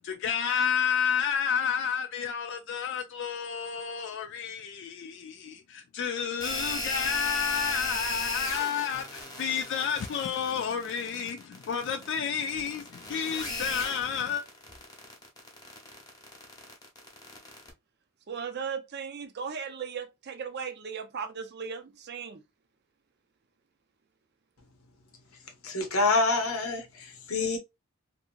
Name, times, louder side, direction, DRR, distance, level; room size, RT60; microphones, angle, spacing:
voice 1, 0.0-14.4, left 7 dB, 60° left, 0.3 m, -30 dB
sound 1, 6.4-17.7, left 1 dB, 20° left, 0.9 m, -36 dB
voice 2, 18.3-22.4, right 6 dB, 50° right, 0.5 m, -37 dB
voice 3, 25.6-27.6, left 3 dB, 85° left, 0.9 m, -27 dB
2.8 x 2.6 x 2.4 m
head